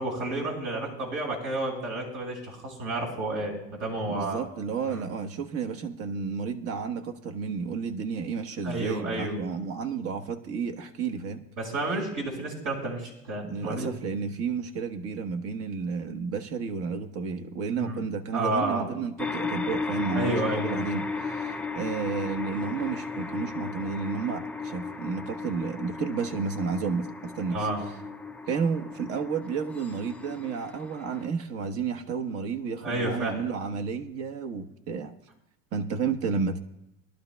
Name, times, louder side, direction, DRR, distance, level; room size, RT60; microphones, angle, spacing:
voice 1, 0.0-4.4 4.9-5.1 8.6-9.4 11.6-13.9 17.7-18.0 18.3-18.9 20.1-20.8 27.5-27.8 32.8-33.4, right 2 dB, 70° right, -1 dB, 5.2 m, -31 dB
voice 2, 4.1-11.4 13.4-27.7 28.5-35.1 35.7-36.6, right 5 dB, 55° right, 6 dB, 1.1 m, -32 dB
sound 1, 19.2-31.3, left 4 dB, 5° left, 0.3 m, -35 dB
21.5 x 12.0 x 2.2 m, 0.82 s
supercardioid pair, 115°, 29 cm